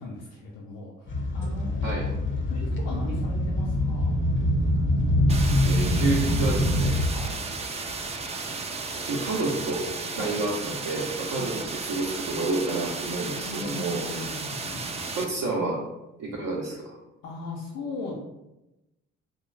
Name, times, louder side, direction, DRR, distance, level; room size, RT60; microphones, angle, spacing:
voice 1, 0.0-2.1 2.5-4.1 7.1-7.4 10.2-10.4 11.3-11.5 13.5-15.2 17.2-18.1, left 3 dB, 90° left, -4 dB, 0.5 m, -38 dB
sound 1, 1.1-7.3 7.9-8.1 9.0-9.1 9.9-10.0, left 1 dB, 35° left, 0.6 m, -24 dB
sound 2, 5.3-15.2, right 4 dB, 20° right, 0.3 m, -34 dB
voice 2, 5.6-7.0 9.0-9.9 10.2-14.0 15.2-15.8 16.2-17.0, right 2 dB, 65° right, -5 dB, 0.6 m, -29 dB
2.4 x 2.1 x 3.1 m, 0.95 s
supercardioid pair, 50°, 33 cm